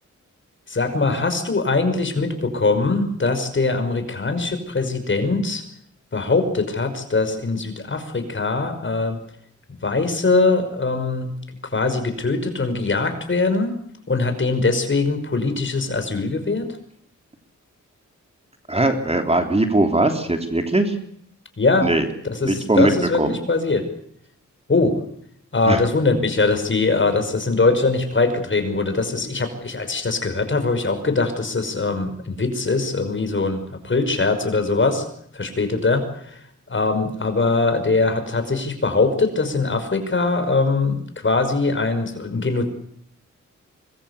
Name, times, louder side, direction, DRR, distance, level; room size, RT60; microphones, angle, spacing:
voice 1, 0.7-5.6 6.1-9.2 9.8-11.3 11.7-13.8 14.1-16.7 21.6-21.9 22.3-23.8 24.7-25.0 25.5-35.0 35.3-36.4 36.7-42.7, left 3 dB, 40° left, 7 dB, 5.6 m, -22 dB
voice 2, 18.7-20.9 21.8-22.0 22.4-22.9 23.2-23.4 25.7-25.8, right 2 dB, 20° right, 5 dB, 3.2 m, -20 dB
25.0 x 21.5 x 8.3 m, 0.66 s
wide cardioid pair, 95°, 29 cm